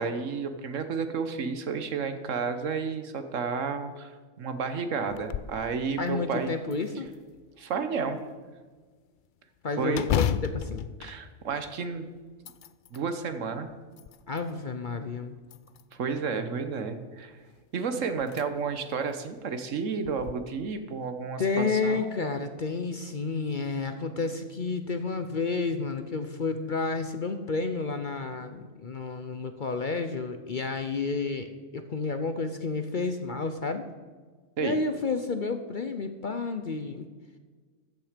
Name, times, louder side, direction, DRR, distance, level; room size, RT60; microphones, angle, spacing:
voice 1, 0.0-4.1 4.4-6.5 7.6-8.2 9.8-10.0 11.0-12.1 12.9-13.7 15.9-17.4 17.7-22.2 34.6-34.8, right 5 dB, 70° right, 9 dB, 1.4 m, -31 dB
sound 1, 5.1-5.6 6.1-6.2 6.7-7.5 9.9-11.9 12.3-13.1 13.7-14.5 15.4-16.1 17.6-17.7 18.2-18.4 18.9-19.0 20.1-20.3, left 9 dB, 80° left, 0.4 m, -32 dB
voice 2, 6.0-7.1 9.6-10.9 14.3-15.4 21.4-31.5 31.7-33.8 34.6-37.1, left 4 dB, 45° left, 8 dB, 0.7 m, -30 dB
14.0 x 9.0 x 5.1 m, 1.4 s
omnidirectional pair, 1.4 m